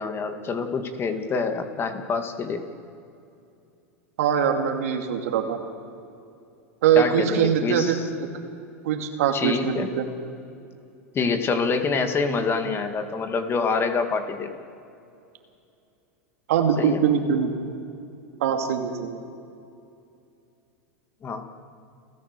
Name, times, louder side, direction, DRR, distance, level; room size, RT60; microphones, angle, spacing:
voice 1, 0.0-2.6 7.0-8.0 9.3-9.9 11.1-14.6 16.8-17.0 21.2-21.5, left 4 dB, 30° left, 7 dB, 2.2 m, -26 dB
voice 2, 4.2-5.6 6.8-8.0 8.8-10.1 16.5-17.5 18.4-19.2, right 8 dB, 70° right, 4 dB, 2.6 m, -22 dB
29.5 x 13.5 x 6.8 m, 2.6 s
hypercardioid pair, 95°, 8 cm